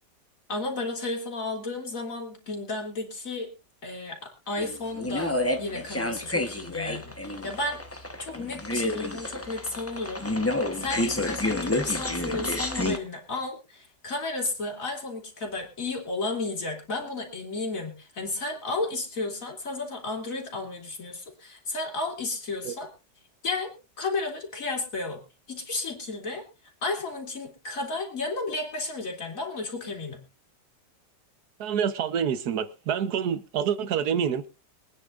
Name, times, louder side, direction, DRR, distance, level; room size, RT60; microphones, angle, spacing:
voice 1, 0.5-3.5 3.8-7.8 8.2-10.4 10.7-22.9 23.4-25.2 25.5-26.4 26.8-30.2, left 3 dB, 50° left, 3.4 m, -33 dB
sound 1, 4.6-13.0, left 1 dB, 10° left, 0.7 m, -29 dB
voice 2, 31.6-34.5, right 8 dB, 65° right, 1.5 m, -27 dB
24.0 x 9.8 x 2.5 m
omnidirectional pair, 1.9 m